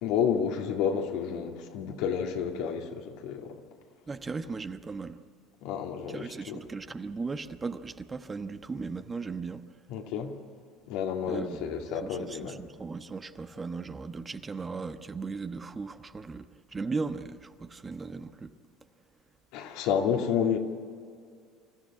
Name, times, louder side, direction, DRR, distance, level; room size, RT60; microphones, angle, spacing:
voice 1, 0.0-3.5 5.6-6.6 9.9-10.3 10.9-12.6 19.5-20.6, left 7 dB, 70° left, 3 dB, 2.3 m, -30 dB
voice 2, 4.1-5.2 6.1-9.6 11.3-18.5, right 4 dB, 25° right, 9 dB, 1.1 m, -37 dB
26.0 x 14.0 x 9.9 m, 2.2 s
hypercardioid pair, 80°, 0 cm